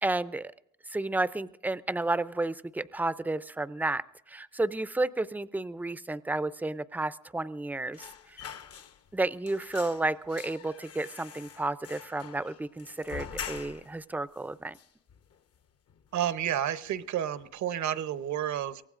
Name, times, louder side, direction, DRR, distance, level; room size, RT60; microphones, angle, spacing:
voice 1, 0.0-0.5 0.9-8.4 9.1-14.8, right 2 dB, 5° right, 15 dB, 0.4 m, -32 dB
sound 1, 7.9-9.2 9.5-14.0 14.3-14.4 14.7-15.6 15.9-16.1 16.4-17.1 17.4-17.6, left 8 dB, 55° left, 0.8 m, -44 dB
voice 2, 16.1-18.8, right 10 dB, 70° right, 13 dB, 0.9 m, -30 dB
24.0 x 17.5 x 2.5 m, 0.80 s
cardioid pair, 90°, 30 cm